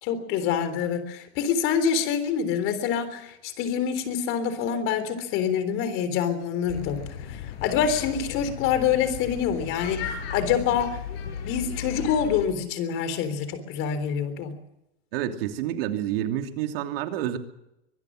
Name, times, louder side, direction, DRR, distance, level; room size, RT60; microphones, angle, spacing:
voice 1, 0.0-7.0 7.3-11.0 11.4-14.6, left 7 dB, 40° left, 11 dB, 3.7 m, -26 dB
sound 1, 6.7-12.5, left 8 dB, 70° left, 5.8 m, -36 dB
voice 2, 15.1-17.4, right 11 dB, 65° right, 5 dB, 2.8 m, -28 dB
24.5 x 20.0 x 6.4 m, 0.86 s
supercardioid pair, 155°, 32 cm